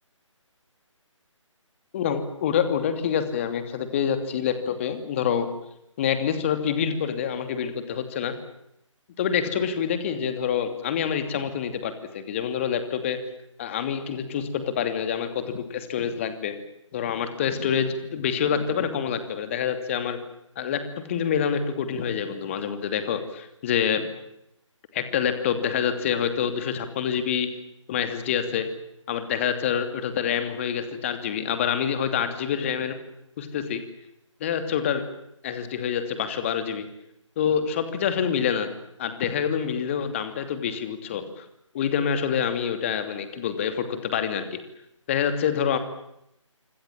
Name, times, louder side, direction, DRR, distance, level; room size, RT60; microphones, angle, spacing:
voice 1, 1.9-5.5 6.0-8.3 9.2-13.2 13.6-16.6 16.9-20.2 20.6-24.1 24.9-27.5 27.9-28.7 29.1-33.0 33.4-33.8 34.4-35.0 35.4-36.8 37.4-38.7 39.0-41.4 41.7-44.6 45.1-45.8, left 8 dB, 25° left, 8 dB, 2.8 m, -26 dB
26.5 x 25.0 x 7.6 m, 0.80 s
figure-of-eight pair, 150°, 17 cm